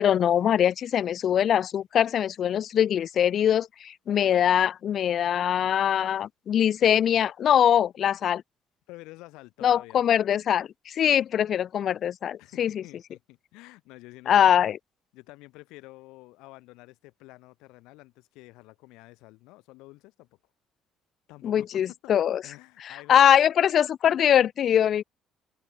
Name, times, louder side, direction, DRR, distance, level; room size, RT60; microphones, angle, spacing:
voice 1, 0.0-8.4 9.6-12.8 14.3-14.8 21.4-22.4 22.8-25.0, left 9 dB, 55° left, 0.4 m, -22 dB
voice 2, 8.9-10.0 12.4-14.7 15.1-20.3 21.3-22.1 22.4-23.3, left 21 dB, 75° left, 2.4 m, -49 dB
open air
hypercardioid pair, 55°, 0 cm